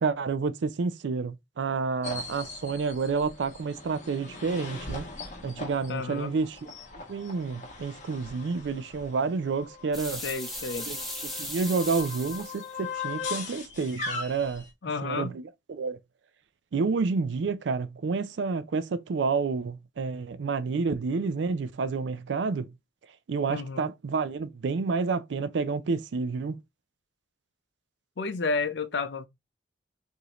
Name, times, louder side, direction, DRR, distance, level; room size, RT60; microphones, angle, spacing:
voice 1, 0.0-5.1 5.4-6.7 7.1-10.2 10.9-11.0 11.4-14.6 15.0-15.4 15.7-16.0 16.7-22.7 23.3-26.6, right 4 dB, 75° right, 0.4 m, -29 dB
sound 1, 2.0-14.7, left 4 dB, 40° left, 1.1 m, -40 dB
voice 2, 5.9-6.3 10.2-10.9 14.8-15.4 23.5-23.9 28.2-29.3, left 4 dB, 70° left, 0.5 m, -31 dB
sound 2, 9.9-12.7, left 1 dB, ahead, 1.0 m, -37 dB
4.8 x 2.7 x 2.9 m
head